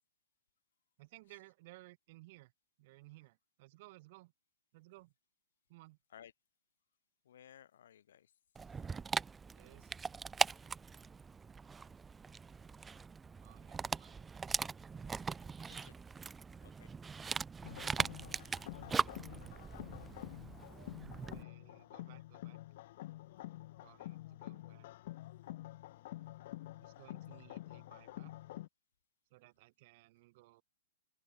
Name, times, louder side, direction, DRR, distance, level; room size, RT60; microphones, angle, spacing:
voice 1, 1.0-2.5 2.8-4.3 4.7-5.1 5.7-6.0 9.5-9.9 13.4-14.3 21.3-22.6 23.8-24.9 26.8-28.3 29.3-30.6, right 20 dB, 45° right, 5.1 m, -59 dB
voice 2, 7.3-8.3 15.7-15.9 16.6-16.9, left 10 dB, 65° left, 7.2 m, -58 dB
Dog, 8.6-21.4, right 5 dB, 10° right, 0.3 m, -40 dB
sound 1, 17.6-28.7, left 16 dB, 50° left, 3.2 m, -48 dB
open air
hypercardioid pair, 150°, 0 cm